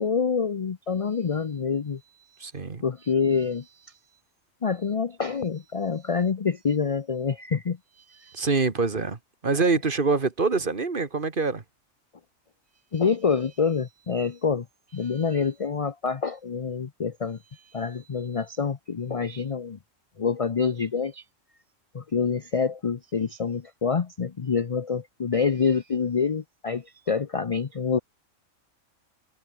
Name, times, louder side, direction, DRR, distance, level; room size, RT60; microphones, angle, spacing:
voice 1, 0.0-2.0 2.8-3.7 4.6-7.8 8.1-8.5 12.9-14.6 14.9-19.8 20.2-21.2 21.9-28.0, left 5 dB, 40° left, 0.5 m, -27 dB
voice 2, 2.4-2.8 8.3-11.6, right 4 dB, 40° right, 1.7 m, -25 dB
omnidirectional pair, 1.3 m